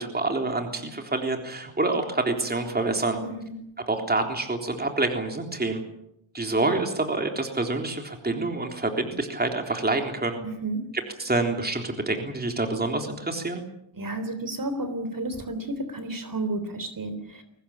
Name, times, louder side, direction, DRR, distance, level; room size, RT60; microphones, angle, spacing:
voice 1, 0.0-3.2 3.9-5.8 6.3-10.4 11.2-13.6, right 2 dB, 20° right, 4 dB, 3.6 m, -27 dB
voice 2, 3.2-3.5 10.4-10.8 14.0-17.4, right 2 dB, 40° right, 10 dB, 3.8 m, -32 dB
23.5 x 19.0 x 8.8 m, 0.78 s
wide cardioid pair, 110°, 48 cm